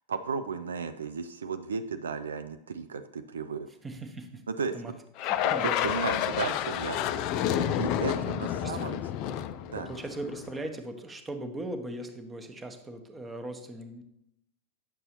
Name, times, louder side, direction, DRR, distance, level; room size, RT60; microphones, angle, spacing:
voice 1, 0.1-3.7 4.5-4.7 5.4-7.0 7.8-9.0 9.7-9.9, right 5 dB, 70° right, 9 dB, 0.3 m, -34 dB
voice 2, 3.8-4.4 4.7-4.9 5.2-5.9 7.4-9.0 9.7-14.0, right 1 dB, 15° right, 7 dB, 0.8 m, -39 dB
sound 1, 5.2-10.5, left 11 dB, 40° left, 0.4 m, -30 dB
9.0 x 6.6 x 2.9 m, 0.83 s
figure-of-eight pair, 90°, 0 cm